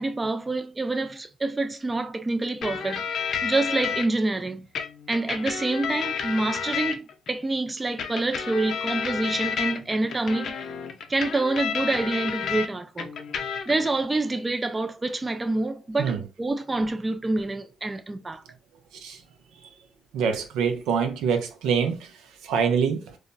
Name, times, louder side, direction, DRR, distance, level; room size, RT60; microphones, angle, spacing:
voice 1, 0.0-3.0 3.4-4.7 5.1-10.5 11.1-13.1 13.7-18.4, right 2 dB, 20° right, 0.3 m, -27 dB
sound 1, 2.6-4.1 4.8-7.3 8.0-12.7 13.0-13.9, left 7 dB, 65° left, 0.5 m, -31 dB
voice 2, 20.1-23.2, right 6 dB, 90° right, 0.6 m, -25 dB
2.3 x 2.0 x 3.8 m
cardioid pair, 90°, 0 cm